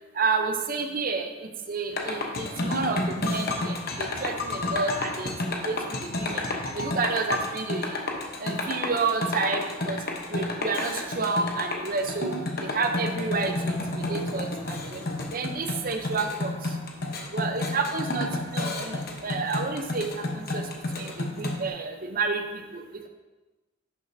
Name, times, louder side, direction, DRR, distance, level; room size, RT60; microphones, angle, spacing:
voice 1, 0.2-1.3 1.7-6.4 6.7-8.0 8.4-10.0 10.3-12.3 12.6-15.0 15.3-16.5 17.3-20.6 21.0-22.4 22.7-23.1, right 4 dB, 45° right, 5 dB, 0.7 m, -30 dB
sound 1, 1.9-21.7, left 2 dB, 55° left, 1.0 m, -31 dB
10.5 x 6.4 x 2.7 m, 1.2 s
head